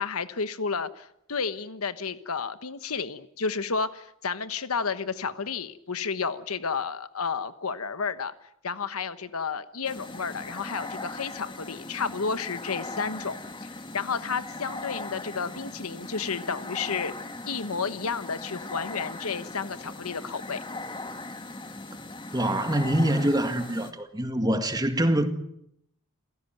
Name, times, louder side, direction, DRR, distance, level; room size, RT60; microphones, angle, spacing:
voice 1, 0.0-8.3 8.6-17.1 17.5-20.6, left 5 dB, 85° left, 1.2 m, -31 dB
sound 1, 9.8-23.9, left 2 dB, 20° left, 1.9 m, -39 dB
voice 2, 22.3-25.3, right 1 dB, 20° right, 1.9 m, -25 dB
28.5 x 16.5 x 9.2 m
head